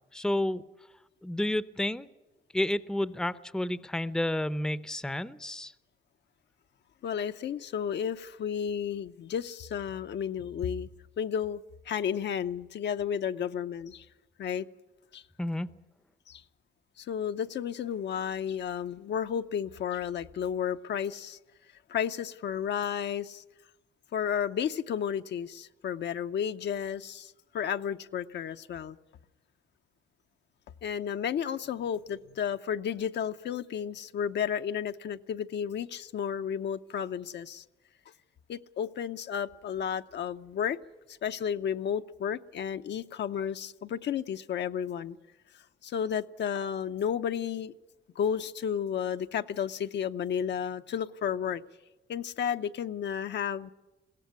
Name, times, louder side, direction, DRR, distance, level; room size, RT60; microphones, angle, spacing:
voice 1, 0.1-0.6 1.2-2.1 2.5-5.7 15.4-15.7, left 1 dB, 5° left, 15 dB, 0.7 m, -30 dB
voice 2, 7.0-10.9 11.2-14.1 14.4-14.7 15.1-15.2 16.3-16.4 17.0-21.4 21.9-23.4 24.1-29.0 30.8-37.6 38.5-40.8 41.1-45.2 45.5-47.7 48.2-51.6 52.1-53.7, left 8 dB, 60° left, 9 dB, 0.7 m, -32 dB
21.5 x 16.5 x 9.6 m, 1.1 s
cardioid pair, 90°, 20 cm